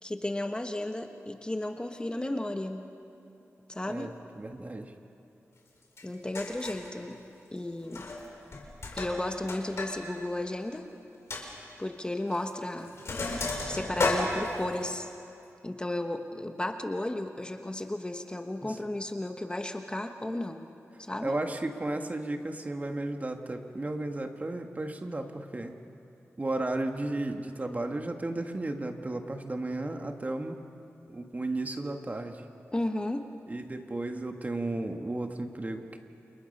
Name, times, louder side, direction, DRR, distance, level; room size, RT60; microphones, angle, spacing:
voice 1, 0.0-2.9 3.7-4.1 6.0-7.2 7.5-8.1 9.0-10.9 11.8-13.0 13.3-13.4 13.6-15.1 15.6-20.7 21.0-21.3 32.7-33.3, left 1 dB, 20° left, 5 dB, 1.2 m, -34 dB
voice 2, 3.9-4.9 18.6-18.8 21.2-25.8 26.4-30.6 31.1-32.4 33.5-36.0, right 2 dB, 30° right, 5 dB, 1.7 m, -34 dB
Sink (filling or washing), 6.0-6.1 6.3-6.9 7.8-8.3 8.5-9.9 10.2-10.3 10.7-10.8 11.3-11.4 12.3-12.5 12.8-14.9, left 2 dB, 65° left, 4.4 m, -32 dB
29.0 x 28.5 x 5.5 m, 2.8 s
wide cardioid pair, 95°, 5 cm